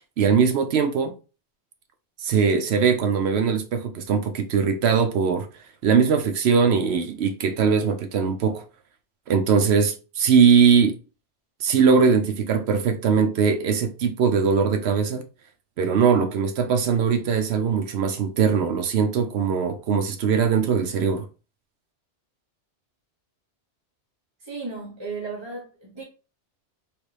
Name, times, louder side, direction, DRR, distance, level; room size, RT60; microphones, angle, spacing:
voice 1, 0.2-1.1 2.2-5.5 5.8-8.6 9.3-10.9 11.6-15.2 15.8-21.3, right 6 dB, 70° right, 0.8 m, -21 dB
voice 2, 24.4-26.0, right 4 dB, 30° right, 0.7 m, -35 dB
3.2 x 2.5 x 3.2 m
omnidirectional pair, 1.2 m